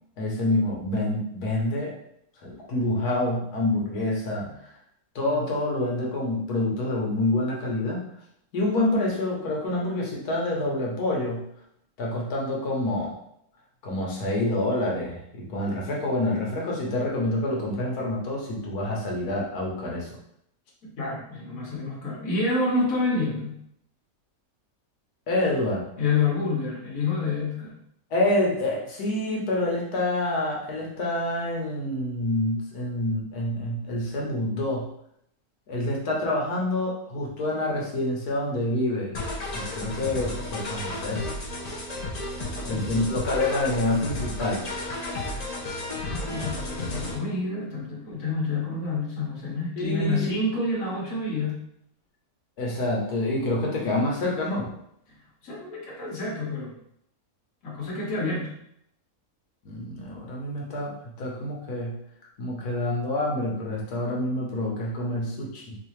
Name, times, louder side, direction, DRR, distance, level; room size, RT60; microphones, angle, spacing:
voice 1, 0.2-1.9 2.4-4.6 5.1-8.0 8.5-11.5 12.0-13.2 13.8-20.1 25.3-25.9 28.1-34.9 35.7-39.1 39.5-41.3 42.7-44.6 49.8-50.3 52.6-54.7 59.6-62.0 62.4-65.8, left 1 dB, 90° left, -2 dB, 1.5 m, -27 dB
voice 2, 20.8-23.6 26.0-27.8 42.5-43.0 46.0-51.6 55.4-56.7 57.6-58.6, left 3 dB, 65° left, -3 dB, 1.6 m, -28 dB
sound 1, 39.1-47.2, left 2 dB, 40° left, 0.6 m, -33 dB
4.6 x 2.6 x 3.1 m, 0.74 s
omnidirectional pair, 1.6 m